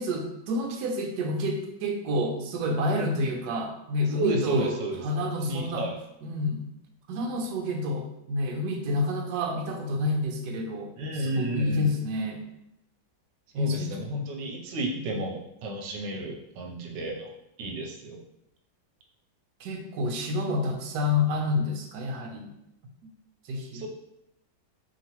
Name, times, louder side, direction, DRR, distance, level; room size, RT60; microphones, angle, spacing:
voice 1, 0.0-4.7 5.0-5.9 6.2-6.7 7.1-12.4 13.5-14.2 14.8-15.2 19.6-22.5 23.4-23.9, left 1 dB, 70° right, 2 dB, 1.2 m, -29 dB
voice 2, 4.1-5.0 5.4-6.0 11.0-11.9 13.5-17.3 17.6-18.2 23.7-23.9, right 2 dB, 90° right, 0 dB, 1.3 m, -31 dB
4.6 x 2.9 x 2.9 m, 0.83 s
omnidirectional pair, 1.9 m